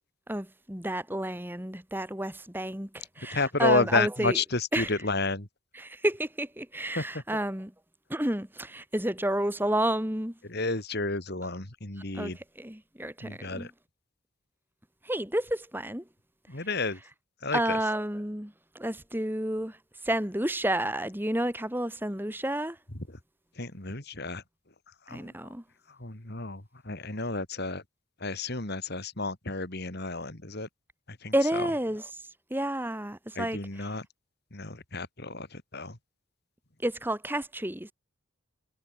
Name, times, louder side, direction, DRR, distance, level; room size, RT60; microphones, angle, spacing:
voice 1, 0.3-4.4 4.7-4.9 5.7-7.7 8.1-10.3 12.1-13.7 15.0-16.0 17.5-19.8 20.0-22.8 25.1-25.6 31.3-32.0 32.5-33.9 36.8-37.9, right 1 dB, 10° right, 2.5 m, -30 dB
voice 2, 3.3-5.5 6.9-7.0 10.5-12.4 13.2-13.7 16.5-17.0 17.4-17.8 23.6-24.4 25.1-25.3 26.0-27.8 28.2-30.7 31.2-31.7 33.3-34.0 34.5-36.0, left 3 dB, 50° left, 3.1 m, -31 dB
head